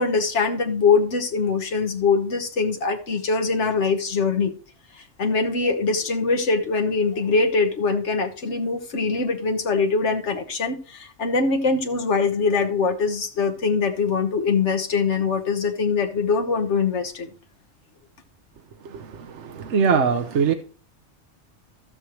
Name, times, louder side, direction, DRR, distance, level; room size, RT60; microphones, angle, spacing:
voice 1, 0.0-4.5 5.0-17.3, left 4 dB, 70° left, 5 dB, 1.6 m, -23 dB
voice 2, 19.4-20.5, right 6 dB, 70° right, 7 dB, 1.1 m, -21 dB
15.0 x 6.3 x 3.1 m, 0.39 s
omnidirectional pair, 1.2 m